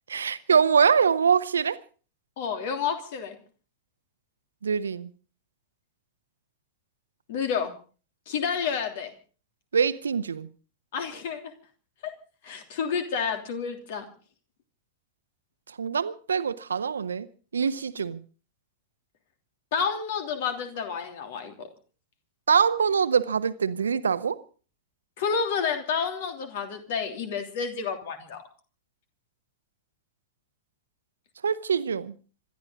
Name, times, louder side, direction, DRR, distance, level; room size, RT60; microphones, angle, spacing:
voice 1, 0.1-1.8 4.6-5.1 9.7-10.5 15.8-17.3 17.5-18.2 22.5-24.4 31.4-32.1, right 6 dB, 70° right, 1.0 m, -24 dB
voice 2, 2.4-3.4 7.3-7.7 8.3-9.1 10.9-11.4 12.0-12.1 12.4-14.1 19.7-21.7 25.2-28.4, left 6 dB, 55° left, 3.1 m, -30 dB
26.5 x 12.5 x 4.0 m
figure-of-eight pair, 90°, 0 cm